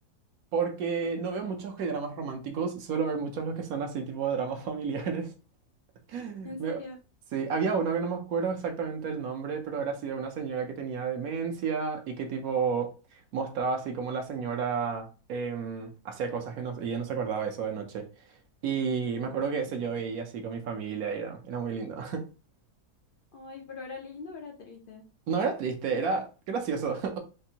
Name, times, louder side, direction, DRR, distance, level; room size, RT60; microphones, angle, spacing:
voice 1, 0.5-5.3 6.1-6.8 7.3-12.9 13.3-18.0 18.6-22.2 25.3-27.2, right 5 dB, 65° right, 1.1 m, -31 dB
voice 2, 6.4-7.0 19.2-20.0 23.3-25.0, left 4 dB, 80° left, 0.4 m, -43 dB
4.4 x 2.5 x 2.8 m
omnidirectional pair, 1.8 m